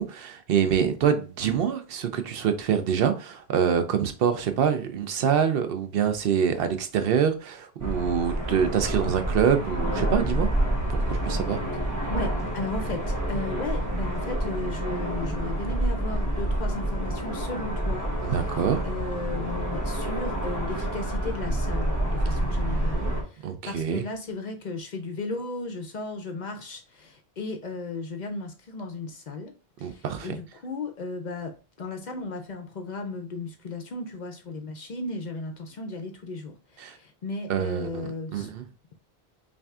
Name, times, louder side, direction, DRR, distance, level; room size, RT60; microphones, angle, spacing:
voice 1, 0.0-10.5 10.9-11.6 18.2-18.9 23.4-24.0 29.8-30.3 36.8-37.0 37.5-38.6, right 8 dB, 70° right, 0.7 m, -25 dB
sound 1, 7.8-23.2, right 1 dB, 20° right, 1.2 m, -28 dB
voice 2, 12.1-29.5 29.8-38.5, left 3 dB, 55° left, 0.6 m, -35 dB
5.5 x 2.6 x 2.3 m
omnidirectional pair, 1.1 m